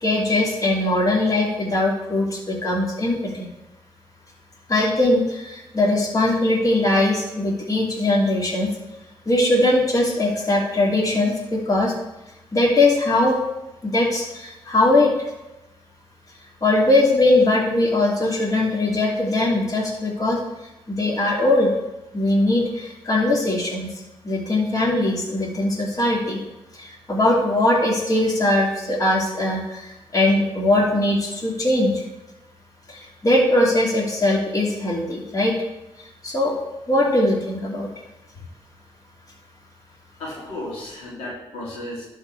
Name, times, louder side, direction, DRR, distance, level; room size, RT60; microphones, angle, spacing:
voice 1, 0.0-3.5 4.7-8.7 9.3-11.9 12.5-13.4 13.8-15.1 16.6-20.4 20.9-21.7 22.1-23.9 24.2-26.4 26.7-32.0 32.9-35.6 36.2-36.5 36.9-37.9, left 1 dB, 35° left, -3 dB, 2.9 m, -20 dB
voice 2, 40.2-42.0, left 1 dB, 90° left, -6 dB, 2.9 m, -34 dB
11.5 x 4.5 x 4.8 m, 0.98 s
supercardioid pair, 50°, 10 cm